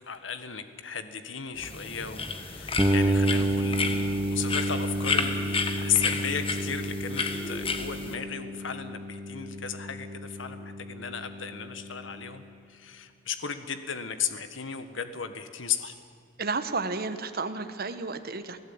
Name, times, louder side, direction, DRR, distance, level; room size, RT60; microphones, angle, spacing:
voice 1, 0.1-15.9, left 7 dB, 75° left, 9 dB, 1.6 m, -35 dB
sound 1, 1.6-8.1, left 4 dB, 30° left, 1.6 m, -32 dB
sound 2, 2.8-12.5, right 1 dB, 15° right, 1.1 m, -30 dB
voice 2, 16.4-18.6, right 4 dB, 50° right, 10 dB, 1.3 m, -32 dB
28.0 x 16.5 x 8.9 m, 2.4 s
head